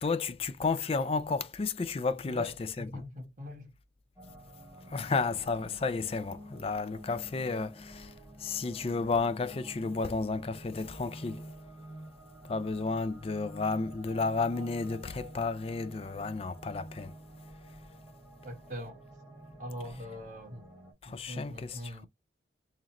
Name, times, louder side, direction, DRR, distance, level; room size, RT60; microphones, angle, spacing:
voice 1, 0.0-2.9 4.9-11.5 12.4-17.2 21.0-22.1, left 4 dB, 30° left, 0.3 m, -32 dB
voice 2, 2.3-3.7 18.4-19.0 19.6-20.6 21.0-22.1, equal, 40° right, 1.7 m, -42 dB
sound 1, 4.2-20.9, right 1 dB, 10° right, 1.5 m, -49 dB
3.8 x 3.1 x 2.8 m
head